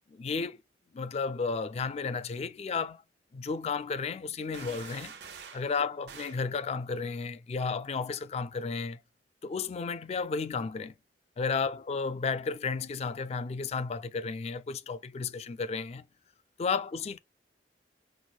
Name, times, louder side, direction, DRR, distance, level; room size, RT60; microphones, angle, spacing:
voice 1, 0.1-0.6 0.9-3.0 3.3-5.2 5.5-9.0 9.4-10.9 11.4-16.0 16.6-17.2, left 5 dB, 35° left, 0.3 m, -33 dB
sound 1, 4.5-5.7 6.1-6.4, right 6 dB, 70° right, 0.8 m, -46 dB
6.0 x 2.1 x 2.3 m
head